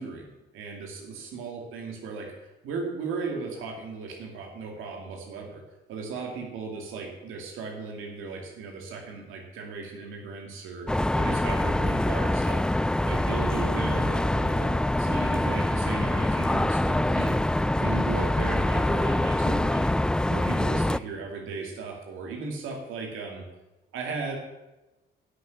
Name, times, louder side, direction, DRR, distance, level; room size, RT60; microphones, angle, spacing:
voice 1, 0.0-5.6 5.9-12.6 13.0-17.4 17.8-20.0 20.3-23.4 23.9-24.4, right 4 dB, 90° right, 1 dB, 2.5 m, -36 dB
sound 1, 10.9-21.0, left 1 dB, 5° left, 0.3 m, -25 dB
11.5 x 6.5 x 8.3 m, 1.0 s
cardioid pair, 90°, 20 cm